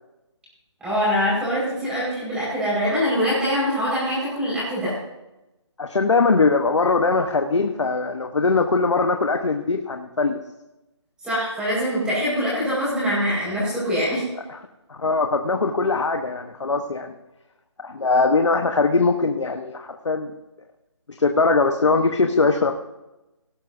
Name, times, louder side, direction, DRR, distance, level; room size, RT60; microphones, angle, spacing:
voice 1, 0.8-4.9 11.2-14.2, equal, 5° right, -7 dB, 4.9 m, -23 dB
voice 2, 5.8-10.4 14.5-14.6 14.9-17.2 17.8-20.3 21.2-22.7, left 3 dB, 75° left, 5 dB, 1.1 m, -21 dB
17.5 x 10.5 x 2.7 m, 0.97 s
figure-of-eight pair, 165°, 15 cm